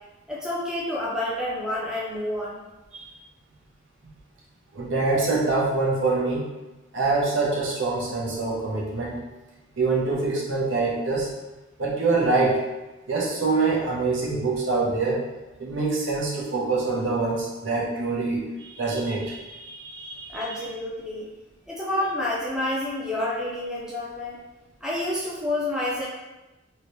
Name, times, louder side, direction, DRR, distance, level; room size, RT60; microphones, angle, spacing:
voice 1, 0.3-2.6 20.3-21.3 21.7-24.4 24.8-26.1, left 1 dB, 5° right, -6 dB, 0.5 m, -29 dB
voice 2, 4.7-6.4 6.9-9.2 9.8-11.3 11.8-12.6 13.1-15.2 15.6-20.6, right 3 dB, 75° right, -3 dB, 0.8 m, -25 dB
2.9 x 2.9 x 3.0 m, 1.1 s
head